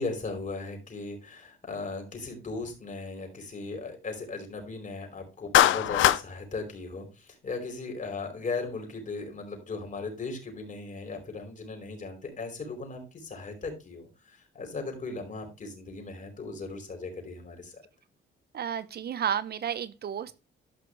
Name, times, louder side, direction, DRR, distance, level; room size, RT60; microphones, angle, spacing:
voice 1, 0.0-17.8, left 3 dB, 40° left, 4.8 m, -37 dB
Clapping, 5.5-6.2, left 14 dB, 80° left, 0.7 m, -20 dB
voice 2, 18.5-20.4, right 9 dB, 55° right, 1.0 m, -32 dB
13.0 x 6.0 x 3.2 m
cardioid pair, 90°, 20 cm